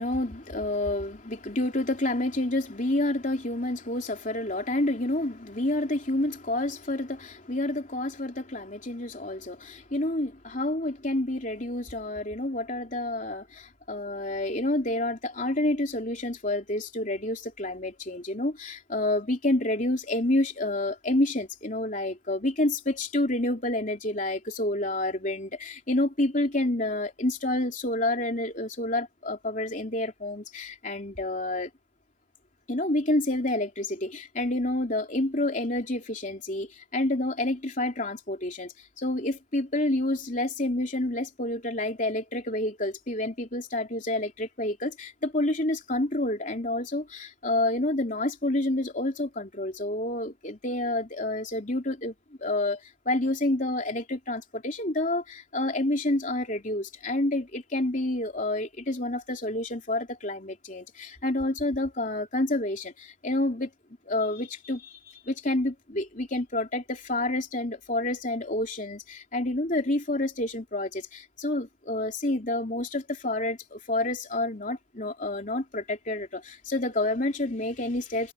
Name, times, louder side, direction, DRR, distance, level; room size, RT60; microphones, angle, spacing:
voice 1, 0.0-31.7 32.7-52.1 52.4-52.8 53.1-63.7 64.1-78.3, left 1 dB, 40° left, 3.4 m, -29 dB
head